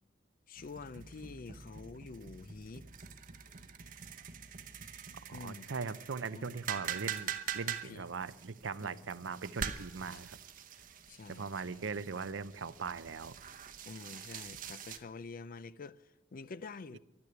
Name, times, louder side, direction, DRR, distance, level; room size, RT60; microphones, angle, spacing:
voice 1, 0.5-2.9 5.3-5.7 6.3-6.6 7.8-8.1 8.7-9.0 10.1-10.2 11.1-11.5 13.8-17.0, left 4 dB, 50° left, 0.5 m, -47 dB
sound 1, 0.6-15.0, right 8 dB, 45° right, 0.9 m, -44 dB
voice 2, 5.3-10.4 11.3-13.4, right 5 dB, 75° right, 0.6 m, -40 dB
12.0 x 9.6 x 9.7 m
head